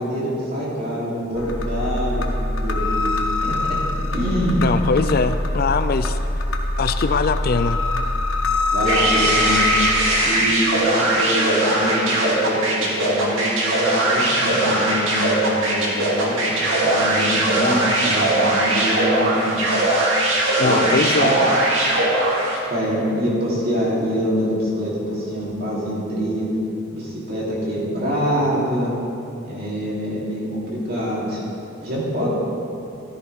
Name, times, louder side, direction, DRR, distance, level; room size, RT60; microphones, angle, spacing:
voice 1, 0.0-3.6 4.1-4.7 8.7-9.7 10.2-19.6 20.6-20.9 21.2-21.8 22.7-26.5 26.9-28.9 29.4-31.4 31.8-32.3, equal, 45° right, -6 dB, 3.4 m, -25 dB
sound 1, 1.3-10.1, left 2 dB, 75° left, 1.2 m, -23 dB
voice 2, 4.6-6.2 6.8-7.8 20.6-21.4, left 4 dB, 45° left, 11 dB, 0.4 m, -21 dB
sound 2, 8.9-22.7, right 1 dB, 75° right, 2.5 m, -20 dB
14.5 x 13.5 x 3.6 m, 2.8 s
head